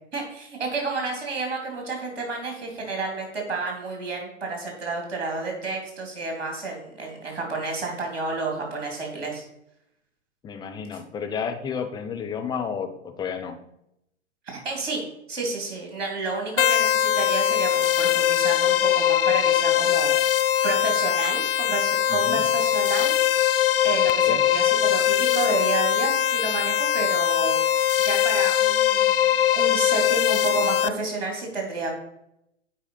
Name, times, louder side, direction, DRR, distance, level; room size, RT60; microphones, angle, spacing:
voice 1, 0.1-9.4 14.5-15.0 15.3-20.3 20.6-23.2 23.8-29.3 29.5-31.9, right 3 dB, 60° right, 1 dB, 3.6 m, -30 dB
voice 2, 10.4-13.6 22.1-22.4 24.3-24.4, left 6 dB, 10° left, 5 dB, 0.7 m, -31 dB
sound 1, 16.6-30.9, left 11 dB, 50° left, 0.5 m, -21 dB
8.2 x 4.9 x 5.7 m, 0.80 s
figure-of-eight pair, 105°, 35 cm